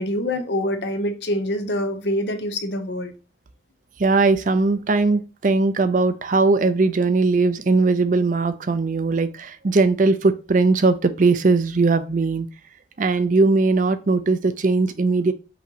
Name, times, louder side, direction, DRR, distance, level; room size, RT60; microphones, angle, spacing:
voice 1, 0.0-3.1, left 1 dB, 70° left, 7 dB, 0.9 m, -25 dB
voice 2, 4.0-12.5 13.0-15.3, right 3 dB, 45° right, 11 dB, 0.5 m, -19 dB
5.7 x 3.0 x 2.8 m, 0.34 s
head